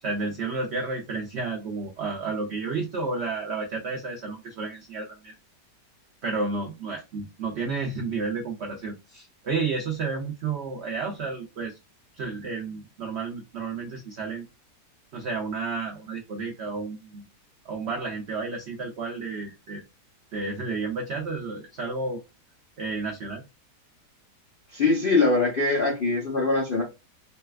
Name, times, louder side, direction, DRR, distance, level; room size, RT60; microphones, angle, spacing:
voice 1, 0.0-5.3 6.2-11.8 12.2-14.4 15.1-17.3 17.7-19.8 20.3-22.2 22.8-23.4, right 4 dB, 75° right, 0.6 m, -31 dB
voice 2, 24.7-26.8, left 3 dB, 60° left, 0.5 m, -22 dB
3.9 x 2.2 x 2.3 m
omnidirectional pair, 1.8 m